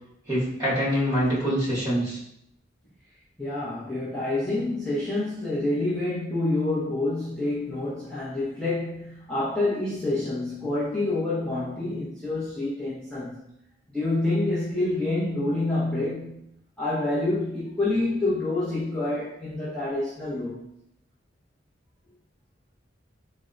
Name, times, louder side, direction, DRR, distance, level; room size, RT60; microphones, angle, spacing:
voice 1, 0.3-2.2, equal, 20° right, -9 dB, 1.4 m, -25 dB
voice 2, 3.4-13.5 13.9-16.4 16.8-20.6, left 2 dB, 5° left, -12 dB, 0.7 m, -27 dB
4.1 x 2.1 x 2.5 m, 0.76 s
head